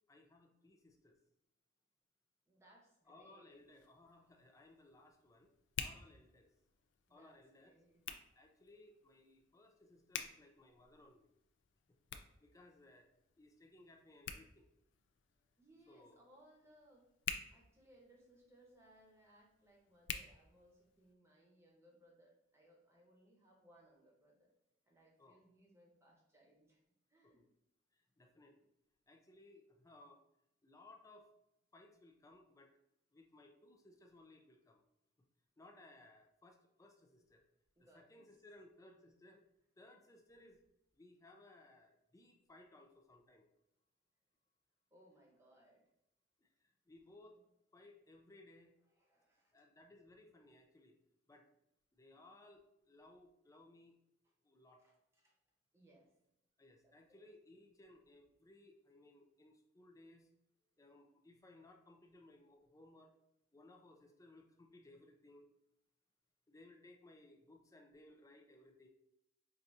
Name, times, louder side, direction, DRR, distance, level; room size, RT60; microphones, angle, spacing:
voice 1, 0.1-1.2 3.1-5.5 5.8-6.5 7.1-7.7 8.3-11.3 11.9-12.0 12.4-13.1 13.4-14.7 15.9-16.2 25.2-25.4 27.2-27.4 27.9-28.7 29.1-30.2 30.6-31.3 31.7-32.7 33.1-34.8 35.6-37.4 37.8-39.4 39.8-40.6 41.0-43.5 46.4-47.4 47.7-48.7 49.5-50.9 51.3-51.5 51.9-52.6 52.9-54.0 54.4-54.8 56.6-60.3 60.8-63.1 63.5-65.5 66.5-68.9, left 2 dB, 20° left, 3 dB, 0.5 m, -62 dB
voice 2, 2.5-3.6 7.1-8.0 15.6-17.1 17.5-24.5 24.8-26.8 27.1-27.4 37.8-38.3 44.9-45.9 47.3-47.4 48.9-49.5 54.8-55.4 55.7-56.1 56.8-57.3, right 1 dB, 15° right, -2 dB, 1.0 m, -67 dB
Hands, 3.5-21.2, left 8 dB, 75° left, 0.4 m, -51 dB
4.7 x 2.6 x 2.7 m, 0.83 s
head